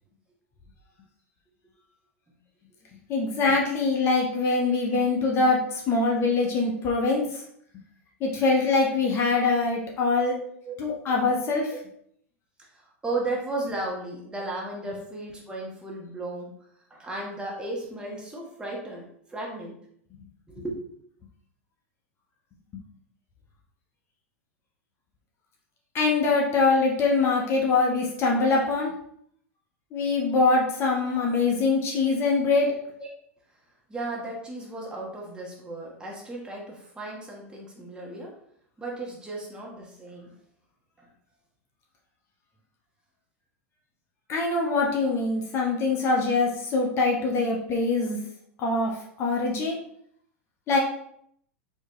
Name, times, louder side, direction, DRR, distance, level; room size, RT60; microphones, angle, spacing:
voice 1, 3.1-7.2 8.2-10.3 10.8-11.7 25.9-28.9 29.9-32.7 44.3-48.2 48.6-48.9 49.2-49.8 50.7-50.8, left 3 dB, 35° left, -1 dB, 1.0 m, -23 dB
voice 2, 4.5-5.0 10.6-10.7 12.6-16.5 16.9-19.8 20.5-20.8 33.0-33.1 33.9-38.3 38.8-40.3 41.0-41.1, right 2 dB, 10° right, -3 dB, 1.2 m, -35 dB
4.3 x 3.0 x 3.0 m, 0.68 s
hypercardioid pair, 95°, 8 cm